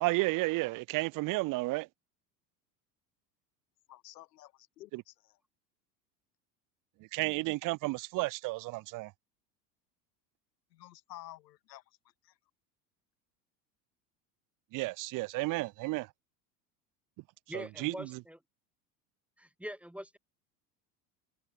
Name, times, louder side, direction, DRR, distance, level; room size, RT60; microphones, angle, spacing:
voice 1, 0.0-1.9 4.9-5.0 7.1-9.1 14.7-16.1 17.5-18.1, right 22 dB, 40° right, 0.6 m, -32 dB
voice 2, 3.9-5.4 10.7-12.0 12.2-12.4, left 16 dB, 75° left, 2.3 m, -52 dB
voice 3, 17.5-18.4 19.4-20.2, equal, 5° right, 0.7 m, -43 dB
hypercardioid pair, 80°, 49 cm